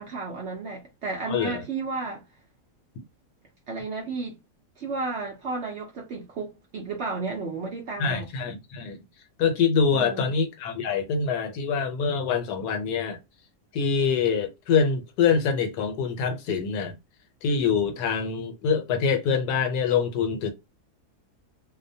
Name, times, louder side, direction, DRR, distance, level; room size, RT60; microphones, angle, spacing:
voice 1, 0.0-2.2 3.7-4.4 4.8-8.3 9.9-10.3, right 3 dB, 65° right, 0.7 m, -33 dB
voice 2, 1.3-1.6 8.0-9.0 9.4-13.2 13.7-17.0 17.4-20.5, left 6 dB, 80° left, 1.2 m, -25 dB
2.7 x 2.1 x 2.6 m
omnidirectional pair, 1.7 m